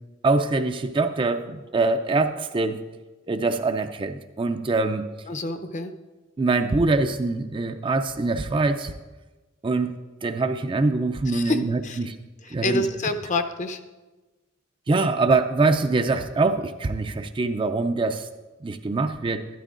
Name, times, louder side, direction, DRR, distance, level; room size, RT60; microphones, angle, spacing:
voice 1, 0.2-2.8 3.3-5.1 6.4-8.9 9.6-9.9 10.2-12.2 12.5-12.8 14.9-18.3 18.6-19.5, right 3 dB, 25° right, 8 dB, 0.3 m, -24 dB
voice 2, 5.3-5.9 11.3-12.0 12.4-13.8, left 2 dB, 35° left, 8 dB, 0.6 m, -27 dB
12.5 x 12.5 x 2.5 m, 1.2 s
head